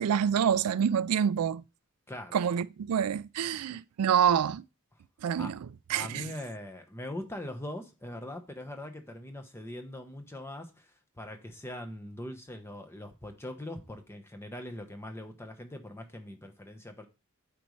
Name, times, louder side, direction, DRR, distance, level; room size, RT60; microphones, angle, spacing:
voice 1, 0.0-1.6 2.3-4.6 5.2-5.6 5.9-6.3, right 8 dB, 85° right, 0.4 m, -27 dB
voice 2, 5.9-17.1, left 1 dB, 10° left, 0.9 m, -41 dB
8.7 x 5.3 x 3.1 m
head